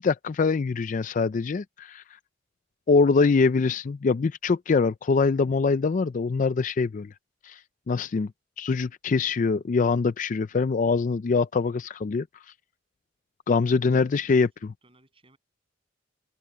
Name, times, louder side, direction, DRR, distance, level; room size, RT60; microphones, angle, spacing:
voice 1, 0.0-2.0 2.9-7.1 7.4-7.6 7.9-8.3 8.6-12.4 13.5-14.5, left 4 dB, 40° left, 0.4 m, -23 dB
voice 2, 13.6-15.4, right 1 dB, 30° right, 7.6 m, -61 dB
open air
head